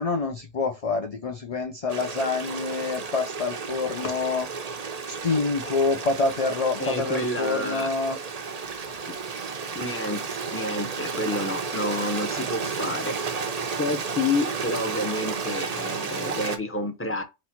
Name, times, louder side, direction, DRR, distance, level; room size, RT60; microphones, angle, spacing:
voice 1, 0.0-4.5 5.1-8.2 8.9-9.0, left 3 dB, 40° left, 0.5 m, -27 dB
Stream, 1.9-16.6, right 5 dB, 40° right, 0.7 m, -32 dB
voice 2, 6.8-7.9 9.1-9.2 9.7-13.1 13.8-17.2, left 2 dB, 10° left, 0.8 m, -29 dB
4.3 x 2.6 x 4.3 m
omnidirectional pair, 1.2 m